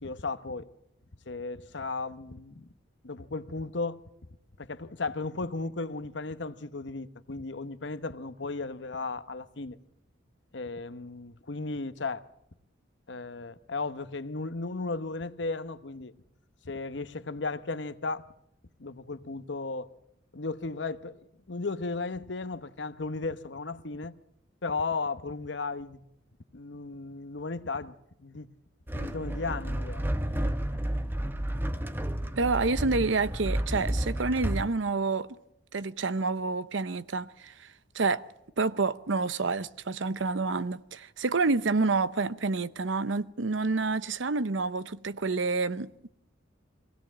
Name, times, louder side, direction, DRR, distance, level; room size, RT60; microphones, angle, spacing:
voice 1, 0.0-0.7 1.3-2.6 3.0-4.0 4.6-9.8 10.5-12.3 13.1-16.1 16.6-18.3 18.8-19.9 20.3-24.1 24.6-26.0 26.5-28.5 28.9-30.1, left 3 dB, 65° left, 1.0 m, -35 dB
sound 1, 28.9-34.7, right 1 dB, 10° right, 0.9 m, -31 dB
voice 2, 32.4-35.3 35.7-37.7 37.9-38.3 38.6-46.1, right 3 dB, 80° right, 0.8 m, -28 dB
23.5 x 16.5 x 7.5 m
head